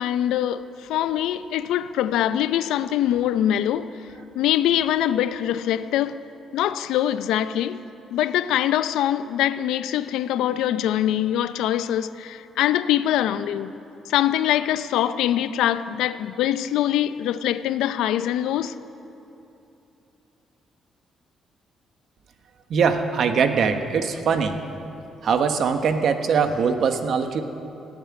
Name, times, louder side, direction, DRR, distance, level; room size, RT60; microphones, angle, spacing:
voice 1, 0.0-3.9 4.3-6.2 6.5-7.8 8.1-13.7 14.1-18.8, left 11 dB, 90° left, 0.5 m, -23 dB
voice 2, 22.7-24.6 25.2-27.4, right 6 dB, 65° right, 1.2 m, -22 dB
17.0 x 9.0 x 9.5 m
cardioid pair, 90°, 0 cm